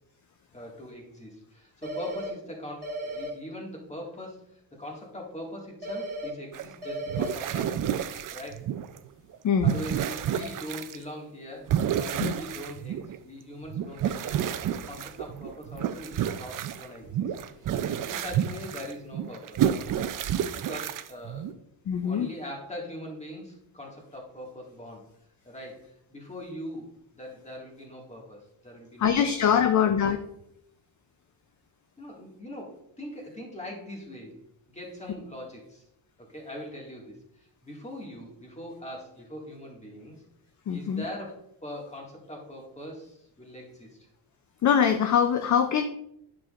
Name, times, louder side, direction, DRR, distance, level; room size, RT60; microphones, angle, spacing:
voice 1, 0.5-7.9 8.3-8.7 9.6-17.4 17.7-17.8 18.1-19.9 20.5-21.5 22.0-25.1 25.4-25.8 26.1-29.6 32.0-34.4 34.7-35.8 36.2-40.2 40.7-44.1, left 1 dB, 15° left, -1 dB, 1.9 m, -42 dB
sound 1, 1.8-2.3 2.8-3.3 5.8-6.3 6.8-7.3, right 1 dB, 20° right, 2.5 m, -35 dB
sound 2, 6.5-6.7 7.1-9.1 9.3-11.0 11.7-13.2 13.6-21.5, right 10 dB, 45° right, 0.5 m, -30 dB
voice 2, 9.4-9.8 10.4-10.5 12.2-12.3 21.9-22.3 29.0-30.2 40.7-41.0 44.6-45.8, left 8 dB, 40° left, 8 dB, 0.5 m, -23 dB
10.0 x 6.2 x 2.5 m, 0.74 s
cardioid pair, 130°, 46 cm